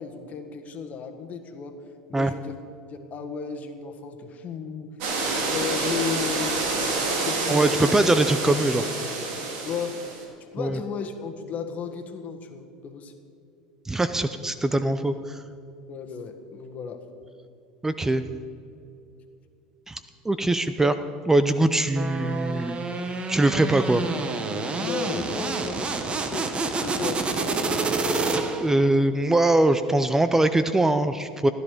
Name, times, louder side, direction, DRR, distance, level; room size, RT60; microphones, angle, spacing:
voice 1, 0.0-1.7 2.1-2.5 2.9-4.9 5.2-7.9 9.6-10.0 10.5-13.1 15.9-17.0 22.6-22.7 24.8-27.2, left 6 dB, 45° left, 5 dB, 1.6 m, -34 dB
sound 1, 5.0-10.2, right 3 dB, 65° right, 2.8 m, -28 dB
voice 2, 7.5-8.9 10.6-10.8 13.9-15.4 17.8-18.2 19.9-20.0 20.2-21.0 21.3-22.8 23.3-24.0 28.6-31.5, right 2 dB, 10° right, 11 dB, 0.6 m, -22 dB
sound 2, 22.0-28.8, right 3 dB, 30° right, 1.4 m, -28 dB
15.0 x 11.0 x 5.1 m, 2.7 s
hypercardioid pair, 90°, 4 cm